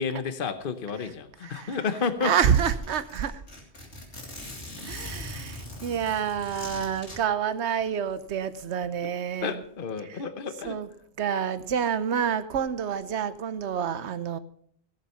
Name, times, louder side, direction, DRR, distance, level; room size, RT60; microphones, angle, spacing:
voice 1, 0.0-2.3 9.4-10.8, left 5 dB, 55° left, 1.1 m, -31 dB
voice 2, 1.4-1.8 2.2-3.4 4.8-9.6 10.0-10.2 10.6-10.9 11.2-14.4, right 8 dB, 75° right, 1.1 m, -28 dB
Zipper (clothing), 1.8-1.9 2.1-2.2 2.5-7.2, left 1 dB, 80° left, 3.4 m, -41 dB
16.5 x 7.3 x 5.6 m
omnidirectional pair, 1.1 m